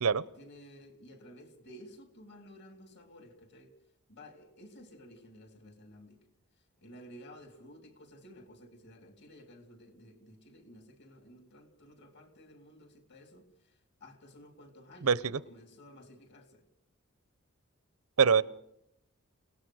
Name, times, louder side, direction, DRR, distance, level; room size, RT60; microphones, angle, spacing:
voice 1, 0.4-3.7 4.1-6.2 6.8-13.7 14.0-15.1 15.4-16.6, equal, 55° left, 3.4 m, -54 dB
voice 2, 15.0-15.4 18.2-18.4, right 6 dB, 90° right, 0.8 m, -24 dB
28.5 x 18.0 x 6.4 m
head